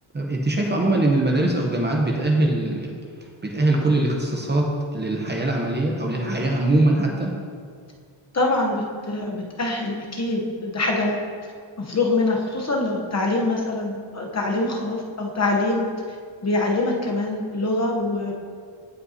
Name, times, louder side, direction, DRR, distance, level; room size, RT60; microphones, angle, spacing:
voice 1, 0.1-2.9 3.4-7.3, right 2 dB, 20° right, -1 dB, 0.8 m, -22 dB
voice 2, 8.3-11.3 11.8-15.9 16.4-18.3, left 2 dB, 30° left, 0 dB, 1.0 m, -24 dB
16.0 x 5.4 x 2.8 m, 2.1 s
wide cardioid pair, 150°, 49 cm